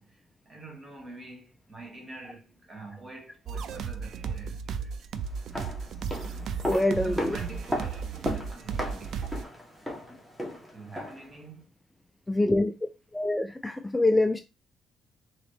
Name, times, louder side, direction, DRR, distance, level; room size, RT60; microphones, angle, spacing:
voice 1, 0.0-4.9 6.2-9.5 10.7-11.7, right 2 dB, 30° right, 1.6 m, -45 dB
sound 1, 3.5-9.4, right 6 dB, 70° right, 0.3 m, -35 dB
sound 2, 5.3-11.3 11.6-11.7, equal, 10° right, 1.4 m, -36 dB
voice 2, 6.7-7.4 12.3-12.7 13.1-14.4, left 2 dB, 10° left, 0.4 m, -25 dB
3.8 x 3.0 x 3.2 m
cardioid pair, 90°, 0 cm